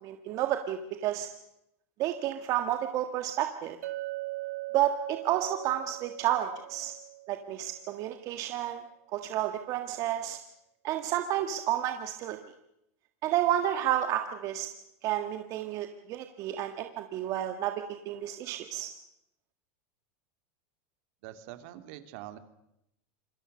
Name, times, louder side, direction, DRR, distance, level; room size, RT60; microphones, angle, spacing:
voice 1, 0.0-1.3 2.0-3.8 4.7-6.9 7.3-8.8 9.1-10.4 10.8-12.4 13.2-14.7 15.0-18.9, right 12 dB, 45° right, 6 dB, 1.7 m, -31 dB
Chink clink, 3.8-8.0, right 19 dB, 85° right, 1.4 m, -40 dB
voice 2, 21.2-22.4, right 13 dB, 60° right, 9 dB, 2.6 m, -44 dB
27.0 x 22.0 x 6.6 m, 0.81 s
supercardioid pair, 140°, 8 cm